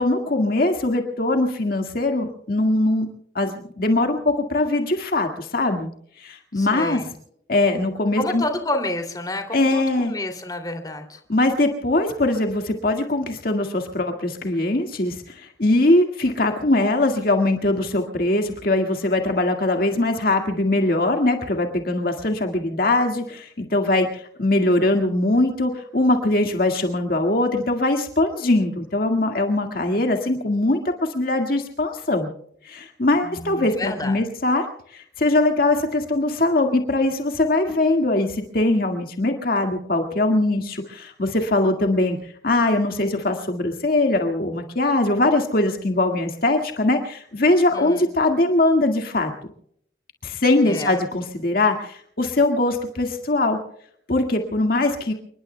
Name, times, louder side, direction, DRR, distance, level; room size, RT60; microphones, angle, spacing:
voice 1, 0.0-3.1 3.4-5.9 6.2-7.0 7.5-8.4 9.5-10.1 11.3-32.3 32.6-34.7 34.9-42.2 42.4-49.3 50.2-53.6 54.1-55.1, left 2 dB, 55° left, 4 dB, 1.9 m, -21 dB
voice 2, 6.5-7.1 8.2-11.2 33.2-34.2 47.7-48.0 50.6-51.0, left 2 dB, 20° left, 5 dB, 2.7 m, -29 dB
29.5 x 20.5 x 2.2 m, 0.68 s
head